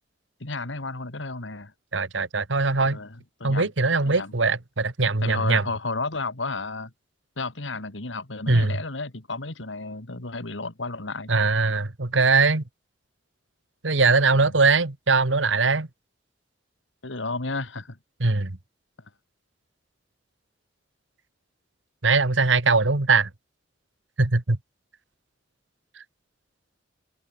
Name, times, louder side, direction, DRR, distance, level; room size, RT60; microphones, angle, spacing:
voice 1, 0.4-1.7 2.9-3.7 4.0-4.3 5.2-6.9 7.4-11.3 14.4-14.5 17.0-18.0, left 3 dB, 90° left, 2.6 m, -32 dB
voice 2, 1.9-3.0 3.4-5.6 8.5-8.8 11.3-12.6 13.8-15.9 18.2-18.5 22.0-23.3 24.2-24.6, right 3 dB, 85° right, 1.7 m, -21 dB
head